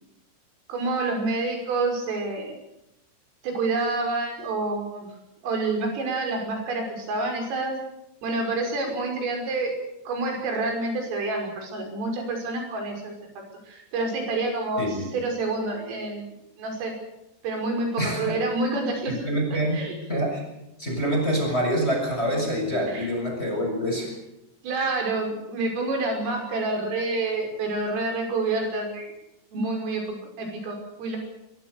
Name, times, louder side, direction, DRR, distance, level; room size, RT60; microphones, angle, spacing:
voice 1, 0.7-2.6 3.4-5.1 5.4-7.7 8.2-9.7 10.1-13.1 13.7-16.9 17.4-19.1 19.5-19.9 22.9-23.1 24.6-29.1 29.5-31.2, right 3 dB, 80° right, 3 dB, 8.4 m, -28 dB
voice 2, 18.0-18.4 19.1-19.8 20.1-20.4 20.8-24.1, equal, 10° left, 1 dB, 7.1 m, -26 dB
23.5 x 23.0 x 6.8 m, 0.86 s
omnidirectional pair, 5.7 m